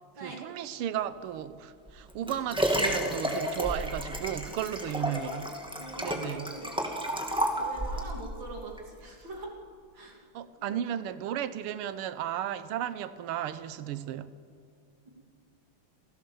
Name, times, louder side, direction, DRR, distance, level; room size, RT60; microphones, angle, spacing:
voice 1, 0.2-5.5 6.0-6.6 10.3-14.3, right 10 dB, 90° right, 1.7 m, -34 dB
Liquid, 1.9-8.1 8.8-8.9, equal, ahead, 2.2 m, -31 dB
voice 2, 4.9-5.4 5.8-6.8 7.5-9.5 9.9-10.2 10.6-10.8, right 2 dB, 60° right, 3.4 m, -43 dB
29.0 x 16.5 x 7.0 m
omnidirectional pair, 2.4 m